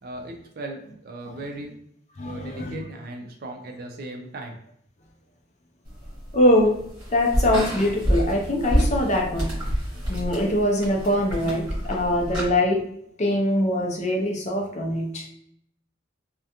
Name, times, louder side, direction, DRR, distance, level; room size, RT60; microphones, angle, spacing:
voice 1, 0.0-1.7 2.2-4.6, right 2 dB, 50° right, 3 dB, 0.4 m, -37 dB
voice 2, 2.2-2.8 6.3-6.8 7.1-9.5 10.1-12.8 13.2-15.3, left 1 dB, 35° left, 0 dB, 0.4 m, -23 dB
sound 1, 5.9-12.5, equal, 25° right, 1.1 m, -28 dB
2.4 x 2.2 x 2.8 m, 0.71 s
head